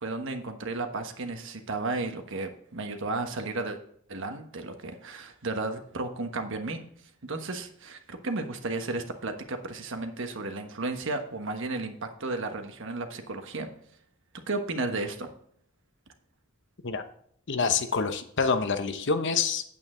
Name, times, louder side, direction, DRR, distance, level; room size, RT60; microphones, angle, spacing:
voice 1, 0.0-3.8 4.1-6.8 7.2-13.7 14.5-15.3, right 3 dB, 60° right, 6 dB, 1.2 m, -33 dB
voice 2, 17.5-19.6, left 5 dB, 60° left, 9 dB, 0.9 m, -26 dB
8.8 x 8.7 x 3.8 m, 0.65 s
head